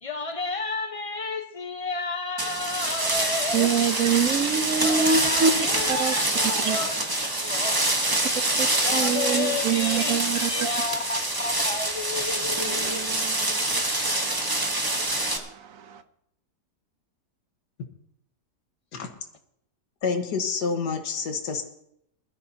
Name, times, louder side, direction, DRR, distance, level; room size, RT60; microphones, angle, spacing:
voice 1, 0.0-3.8 4.4-7.0 7.4-7.8 8.8-10.2 10.5-13.1, left 3 dB, 25° left, 0.8 m, -32 dB
sound 1, 2.4-15.4, right 2 dB, 15° right, 1.0 m, -26 dB
voice 2, 3.5-6.1 6.6-6.8 8.6-8.7 8.9-10.5 12.6-16.0, right 6 dB, 60° right, 1.1 m, -27 dB
voice 3, 20.0-21.6, left 5 dB, 80° left, 1.9 m, -28 dB
21.0 x 13.0 x 2.8 m
omnidirectional pair, 1.8 m